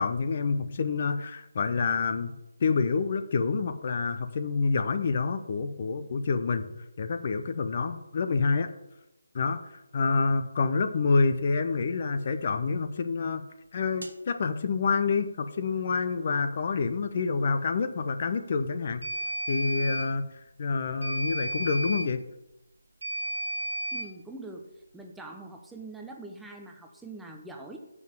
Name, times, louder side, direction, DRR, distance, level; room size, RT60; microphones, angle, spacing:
voice 1, 0.0-2.3 2.6-8.7 9.3-13.4 13.7-19.0 19.5-22.2, left 4 dB, 40° left, 9 dB, 0.7 m, -27 dB
sound 1, 14.0-14.2 19.0-20.1 21.0-22.1 23.0-24.1, right 1 dB, 85° right, 1.3 m, -33 dB
voice 2, 23.9-24.6 24.9-27.8, right 2 dB, 5° right, 2 dB, 0.7 m, -43 dB
7.2 x 6.1 x 7.7 m, 0.92 s
figure-of-eight pair, 155°, 0 cm